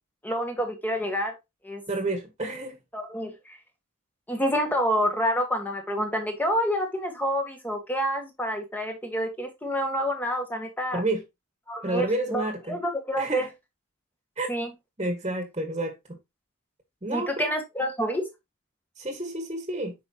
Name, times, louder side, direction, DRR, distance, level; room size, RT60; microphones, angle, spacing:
voice 1, 0.2-1.3 1.6-1.8 2.9-3.6 4.3-11.0 11.7-12.4 12.7-13.4 14.5-14.7 17.1-18.3, equal, 10° left, 1.7 m, -28 dB
voice 2, 1.9-2.8 10.9-11.2 11.8-12.8 13.2-13.5 14.4-14.5 15.0-16.2 17.0-17.5 19.0-19.9, right 2 dB, 30° right, 1.7 m, -29 dB
8.3 x 5.3 x 2.9 m
head